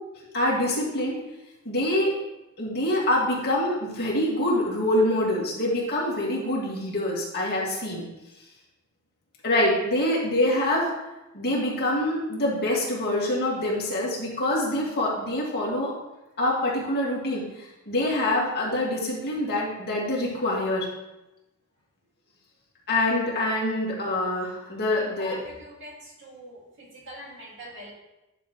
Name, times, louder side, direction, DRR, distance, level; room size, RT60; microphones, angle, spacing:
voice 1, 0.3-1.2 1.6-2.1 2.6-8.1 9.4-10.9 11.3-15.9 16.4-20.9 22.9-25.4, left 1 dB, 50° left, -5 dB, 2.3 m, -25 dB
voice 2, 25.0-27.9, equal, 55° right, -4 dB, 2.6 m, -43 dB
10.5 x 5.8 x 3.3 m, 0.98 s
head